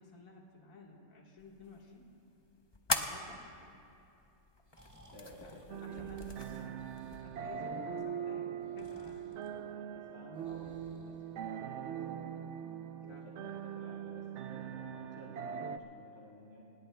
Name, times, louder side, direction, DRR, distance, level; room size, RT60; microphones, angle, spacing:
voice 1, 0.0-2.1 2.9-3.4 5.4-5.5 5.8-9.3 13.0-13.7, left 3 dB, 75° left, -2 dB, 2.1 m, -55 dB
sound 1, 1.4-7.2, left 2 dB, 25° left, 0.6 m, -42 dB
Breathing, 4.4-11.9, equal, 10° right, 1.8 m, -62 dB
voice 2, 5.1-6.1 7.5-12.4 13.0-16.6, left 1 dB, 55° left, -5 dB, 2.0 m, -55 dB
sound 2, 5.7-15.8, right 8 dB, 65° right, 0.8 m, -42 dB
27.5 x 20.0 x 2.2 m, 2.7 s
omnidirectional pair, 1.5 m